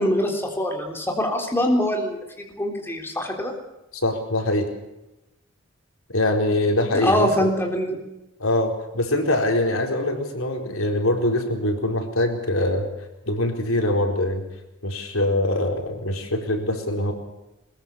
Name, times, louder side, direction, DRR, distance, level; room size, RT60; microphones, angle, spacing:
voice 1, 0.0-3.5 7.0-8.0, equal, 10° left, 1 dB, 3.7 m, -24 dB
voice 2, 3.9-4.7 6.1-7.5 8.4-12.9 13.3-14.4 14.8-17.1, left 1 dB, 85° left, 3 dB, 4.5 m, -23 dB
21.5 x 21.5 x 7.0 m, 0.94 s
head